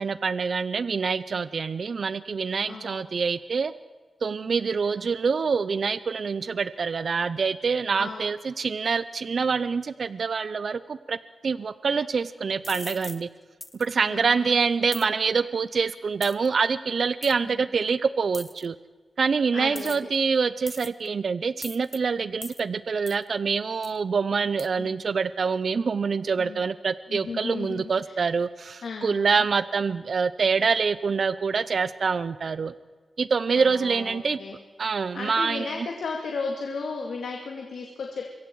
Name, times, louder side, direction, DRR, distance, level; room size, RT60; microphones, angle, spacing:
voice 1, 0.0-3.7 4.2-11.2 11.4-13.3 13.8-18.8 19.2-32.7 33.2-34.4 34.8-35.7, right 5 dB, 50° right, 15 dB, 0.5 m, -26 dB
voice 2, 2.7-3.0 5.0-5.1 8.0-8.3 14.1-14.6 17.4-17.7 19.5-20.1 24.8-25.0 26.4-26.6 27.1-28.2 28.8-29.4 33.5-34.6 35.1-38.3, left 4 dB, 75° left, 1 dB, 2.5 m, -35 dB
sound 1, 12.6-13.2 13.6-13.9 14.9-15.1 16.2-16.5 17.2-17.3 18.3-18.7 19.8-20.2 20.7-21.1 21.6-22.0 22.4-22.6 23.1-23.2 23.8-24.0 24.6-24.7, left 1 dB, 10° left, 0.7 m, -39 dB
25.5 x 22.5 x 4.7 m, 1.4 s
wide cardioid pair, 150°, 0 cm